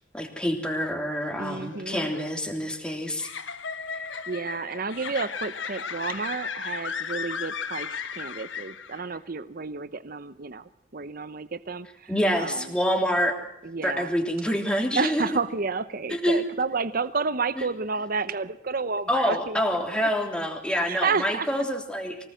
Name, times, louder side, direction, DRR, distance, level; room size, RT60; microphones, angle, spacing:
voice 1, 0.1-3.3 12.1-13.4 13.8-15.3 16.1-16.4 17.6-17.7 19.1-22.2, equal, 5° left, 2 dB, 3.3 m, -26 dB
voice 2, 1.4-2.1 3.9-12.1 12.4-12.7 13.6-14.1 15.0-19.6 20.8-21.5, right 4 dB, 50° right, 13 dB, 0.8 m, -31 dB
sound 1, 1.6-9.2, left 6 dB, 80° left, 1.4 m, -35 dB
25.0 x 18.5 x 7.7 m, 0.77 s
head